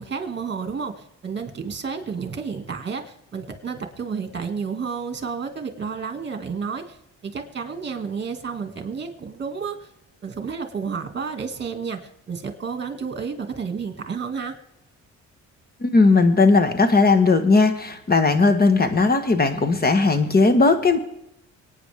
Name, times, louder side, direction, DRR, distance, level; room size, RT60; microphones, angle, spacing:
voice 1, 0.0-7.0 7.2-9.9 10.2-14.5, right 5 dB, 35° right, 6 dB, 2.2 m, -31 dB
voice 2, 15.8-21.0, left 3 dB, 30° left, 9 dB, 1.5 m, -17 dB
25.0 x 9.4 x 3.6 m, 0.80 s
cardioid pair, 90°, 30 cm